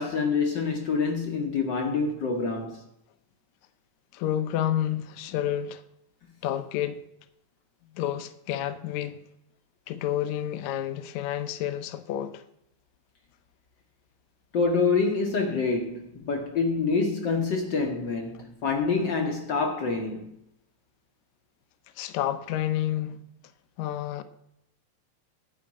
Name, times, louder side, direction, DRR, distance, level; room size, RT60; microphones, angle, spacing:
voice 1, 0.0-2.8 14.5-20.3, left 4 dB, 60° left, 1.2 m, -26 dB
voice 2, 4.1-5.8 6.4-7.0 7.9-9.2 9.9-12.4 22.0-23.2 23.8-24.2, left 11 dB, 75° left, 2.0 m, -29 dB
11.0 x 5.1 x 8.5 m
omnidirectional pair, 3.4 m